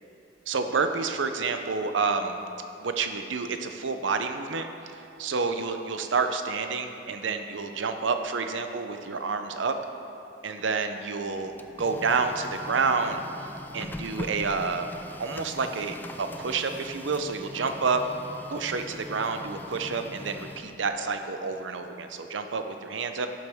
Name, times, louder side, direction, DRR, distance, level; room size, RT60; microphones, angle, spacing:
voice 1, 0.5-2.4 2.8-4.7 5.2-9.8 10.4-11.5 11.8-13.2 13.7-14.9 15.2-18.0 18.5-23.3, right 4 dB, 85° right, 7 dB, 0.6 m, -29 dB
Printer, 11.3-21.1, left 1 dB, 10° left, 0.3 m, -42 dB
12.0 x 7.6 x 3.6 m, 2.8 s
head